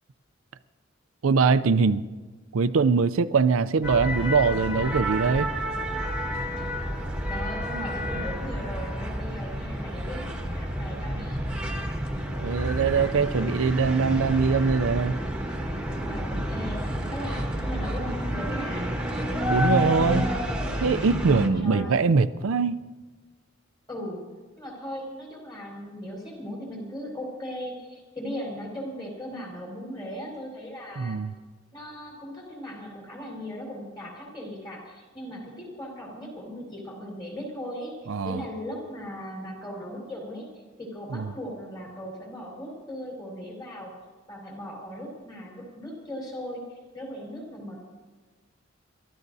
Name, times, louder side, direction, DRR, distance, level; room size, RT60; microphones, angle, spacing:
voice 1, 1.2-2.0 2.5-5.5 12.4-15.2 19.5-20.3 20.8-22.8 31.0-31.3 38.1-38.4 41.1-41.3, right 5 dB, 85° right, 12 dB, 0.5 m, -22 dB
sound 1, 3.8-21.5, equal, 5° right, 1.4 m, -29 dB
voice 2, 7.3-11.4 16.0-18.9 21.6-22.0 23.9-24.2 24.6-31.2 31.7-37.9 38.2-40.5 40.8-43.9 44.3-46.6 46.9-47.8, equal, 20° left, -2 dB, 4.3 m, -38 dB
29.0 x 13.0 x 2.7 m, 1.3 s
head